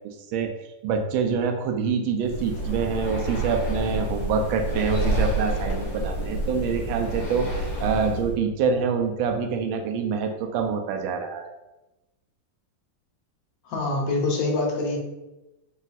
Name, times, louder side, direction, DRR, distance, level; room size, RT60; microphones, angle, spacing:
voice 1, 0.8-11.5, right 5 dB, 85° right, 4 dB, 1.3 m, -26 dB
Breathing, 2.2-8.3, right 1 dB, 55° left, 1.5 m, -28 dB
voice 2, 13.7-15.0, left 2 dB, 75° left, -1 dB, 1.6 m, -25 dB
4.1 x 2.4 x 4.0 m, 0.99 s
omnidirectional pair, 2.1 m